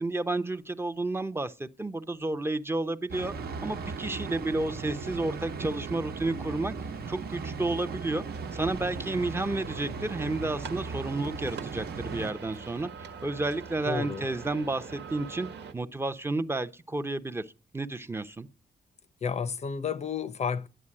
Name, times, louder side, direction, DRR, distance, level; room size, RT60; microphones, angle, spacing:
voice 1, 0.0-3.3 3.6-6.7 7.1-8.2 8.5-15.5 15.7-18.5, right 2 dB, 15° right, 0.6 m, -31 dB
sound 1, 3.1-12.3, right 4 dB, 65° right, 1.1 m, -37 dB
sound 2, 8.3-15.7, right 5 dB, 90° right, 1.4 m, -44 dB
voice 2, 13.9-14.2 19.2-20.7, left 6 dB, 40° left, 0.6 m, -31 dB
11.0 x 8.3 x 8.6 m
wide cardioid pair, 165°, 17 cm